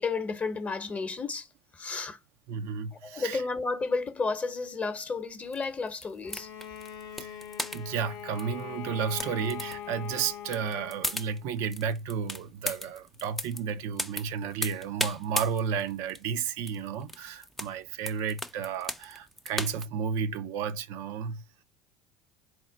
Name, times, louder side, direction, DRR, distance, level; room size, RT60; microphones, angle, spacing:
voice 1, 0.0-1.5 1.7-2.2 2.9-6.5, left 4 dB, 25° left, 0.8 m, -32 dB
voice 2, 2.5-3.4 7.2-7.4 7.7-21.4, right 7 dB, 65° right, 0.4 m, -32 dB
sound 1, 5.4-19.9, left 1 dB, 5° left, 0.4 m, -37 dB
Bowed string instrument, 6.2-11.4, left 9 dB, 65° left, 0.6 m, -42 dB
4.2 x 2.1 x 3.8 m
hypercardioid pair, 80°, 6 cm